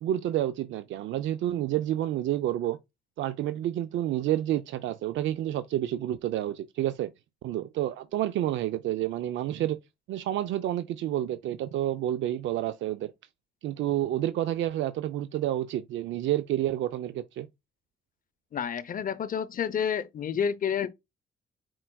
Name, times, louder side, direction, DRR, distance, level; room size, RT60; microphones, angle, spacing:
voice 1, 0.0-2.8 3.2-7.1 7.4-9.8 10.1-13.1 13.6-17.5, right 12 dB, 75° right, 0.4 m, -29 dB
voice 2, 18.5-20.9, left 7 dB, 45° left, 0.6 m, -29 dB
4.5 x 4.3 x 2.2 m
cardioid pair, 90°, 20 cm